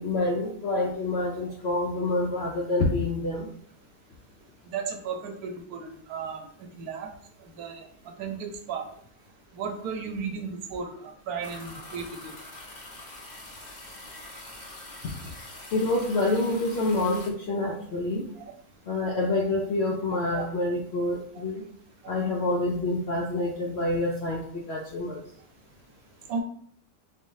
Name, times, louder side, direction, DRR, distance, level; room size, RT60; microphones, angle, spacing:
voice 1, 0.0-3.5 15.0-15.1 15.7-18.3 18.9-21.6 22.1-25.2, left 2 dB, 65° left, -1 dB, 0.6 m, -27 dB
voice 2, 4.7-6.4 6.8-7.1 7.6-7.9 8.2-8.8 9.5-12.3 18.4-18.5 20.3-20.4 22.0-22.1 26.3-26.4, right 5 dB, 75° right, 4 dB, 1.1 m, -34 dB
sound 1, 11.4-17.3, left 2 dB, 35° left, 0.9 m, -44 dB
4.0 x 3.1 x 2.7 m, 0.63 s
omnidirectional pair, 1.7 m